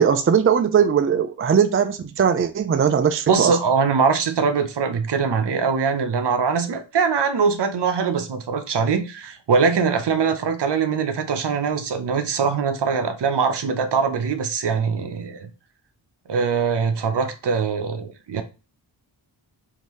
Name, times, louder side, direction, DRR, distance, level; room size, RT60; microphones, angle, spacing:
voice 1, 0.0-3.6, right 7 dB, 30° right, 0.4 m, -19 dB
voice 2, 3.3-15.5 16.3-18.4, right 5 dB, 60° right, 0.8 m, -22 dB
5.1 x 2.8 x 3.1 m
cardioid pair, 70°, 46 cm